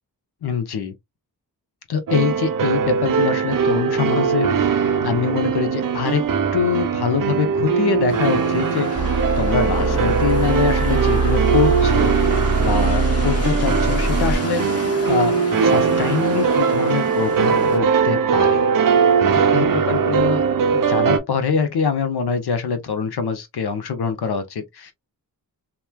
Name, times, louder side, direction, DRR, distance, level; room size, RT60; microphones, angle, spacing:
voice 1, 0.4-0.9 1.9-6.2 6.5-14.6 15.0-15.3 15.6-18.6 19.1-19.2 19.5-20.4 20.7-24.9, left 6 dB, 60° left, 0.8 m, -24 dB
sound 1, 2.1-21.2, right 6 dB, 50° right, 0.6 m, -20 dB
sound 2, 8.1-17.8, left 3 dB, 35° left, 1.1 m, -31 dB
sound 3, 9.0-14.4, right 3 dB, ahead, 0.9 m, -22 dB
3.0 x 2.2 x 2.2 m
cardioid pair, 50°, 43 cm